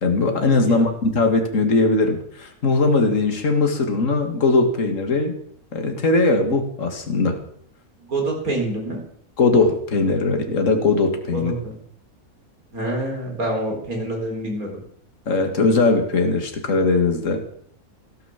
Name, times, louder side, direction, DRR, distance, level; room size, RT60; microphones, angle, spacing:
voice 1, 0.0-5.3 5.7-7.4 9.4-11.5 15.3-17.4, left 3 dB, 55° left, 5 dB, 2.4 m, -20 dB
voice 2, 8.0-9.0 11.3-11.8 12.7-14.7, right 1 dB, 65° right, 1 dB, 4.7 m, -26 dB
17.0 x 9.6 x 7.3 m, 0.65 s
omnidirectional pair, 1.6 m